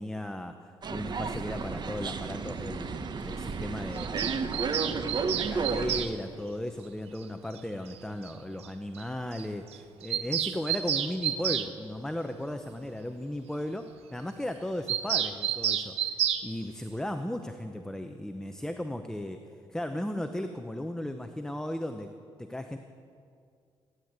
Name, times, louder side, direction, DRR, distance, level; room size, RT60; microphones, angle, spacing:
voice 1, 0.0-4.5 4.9-16.0 16.4-19.4 19.7-22.1 22.4-22.8, left 1 dB, 5° left, 6 dB, 0.7 m, -36 dB
sound 1, 0.8-6.1, right 4 dB, 45° right, 1.0 m, -32 dB
Bird vocalization bird call bird song, 4.0-6.1 7.6-7.7 7.9-8.0 8.2-8.3 8.6-8.7 8.9-9.0 9.3-9.4 9.7-11.7 14.9-16.4, right 10 dB, 85° right, 0.8 m, -30 dB
16.0 x 10.5 x 8.1 m, 2.3 s
cardioid pair, 100°, 10 cm